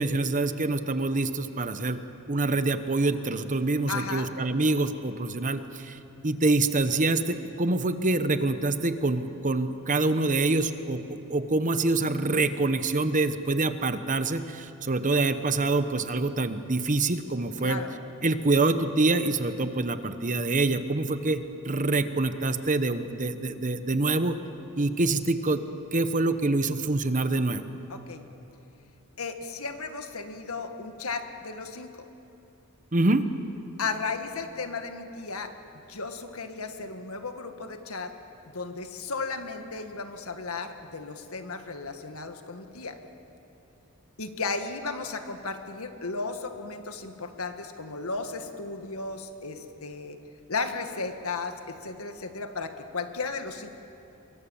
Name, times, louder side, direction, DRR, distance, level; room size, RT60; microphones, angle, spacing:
voice 1, 0.0-2.0 2.3-17.8 18.2-24.4 24.8-25.6 25.9-27.6 32.9-33.2, right 2 dB, 35° right, 10 dB, 1.0 m, -26 dB
voice 2, 3.9-4.3 17.6-18.0 27.9-28.2 29.2-31.9 33.8-35.5 35.9-38.1 38.4-43.0 44.2-50.2 50.5-53.7, left 4 dB, 80° left, 7 dB, 1.7 m, -35 dB
24.5 x 23.5 x 7.2 m, 2.8 s
head